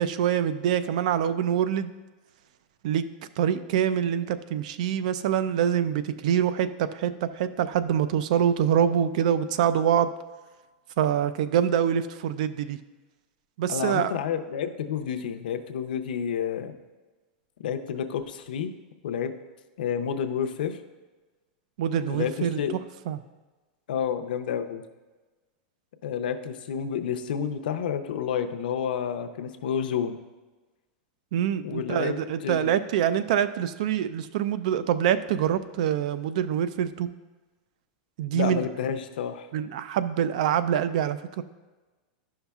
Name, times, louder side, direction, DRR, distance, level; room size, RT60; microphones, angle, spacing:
voice 1, 0.0-1.9 2.8-3.0 3.4-10.1 11.0-12.8 13.6-14.1 21.8-22.6 23.1-23.2 31.3-37.1 38.2-38.6 39.5-41.4, right 9 dB, 55° right, 14 dB, 0.3 m, -25 dB
voice 2, 13.7-16.7 17.6-18.7 19.0-19.3 19.8-20.8 22.1-22.8 23.9-24.8 26.0-30.2 31.6-32.2 32.4-32.7 38.3-39.5, left 8 dB, 90° left, 7 dB, 0.6 m, -30 dB
11.5 x 5.5 x 2.3 m, 1.2 s
supercardioid pair, 175°, 5 cm